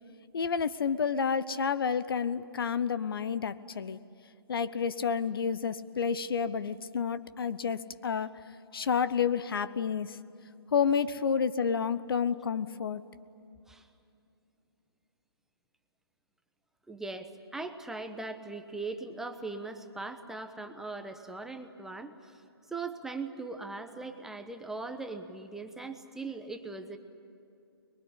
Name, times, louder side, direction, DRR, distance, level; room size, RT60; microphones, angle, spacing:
voice 1, 0.3-4.0 4.5-8.3 8.7-10.2 10.7-13.0, left 6 dB, 65° left, 14 dB, 0.9 m, -30 dB
voice 2, 16.9-22.3 22.7-27.0, right 3 dB, 5° right, 7 dB, 1.0 m, -40 dB
24.0 x 22.0 x 10.0 m, 2.6 s
hypercardioid pair, 140°, 13 cm